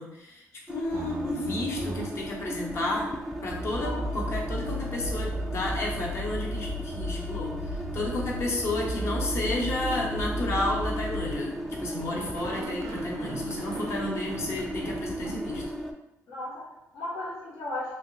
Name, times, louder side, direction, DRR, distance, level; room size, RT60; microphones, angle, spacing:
voice 1, 0.0-3.1 3.4-15.6, left 2 dB, 55° left, -1 dB, 0.8 m, -32 dB
sound 1, 0.7-15.9, equal, 5° left, 0.3 m, -36 dB
sound 2, 0.9-15.7, right 1 dB, 80° right, 0.4 m, -35 dB
voice 2, 16.3-18.0, left 1 dB, 90° left, -5 dB, 1.1 m, -36 dB
3.3 x 2.7 x 2.7 m, 0.87 s
cardioid pair, 125°, 6 cm